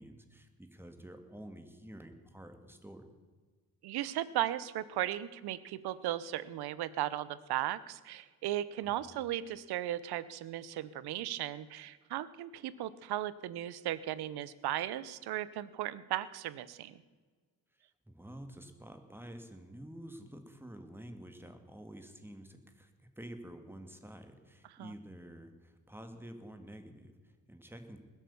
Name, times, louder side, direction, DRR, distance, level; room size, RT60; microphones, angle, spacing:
voice 1, 0.0-3.0 8.8-9.2 18.1-28.0, right 1 dB, 5° right, 7 dB, 2.0 m, -49 dB
voice 2, 3.8-17.0 24.8-24.9, right 13 dB, 85° right, 17 dB, 0.8 m, -36 dB
20.5 x 8.3 x 7.0 m, 1.4 s
cardioid pair, 90°, 37 cm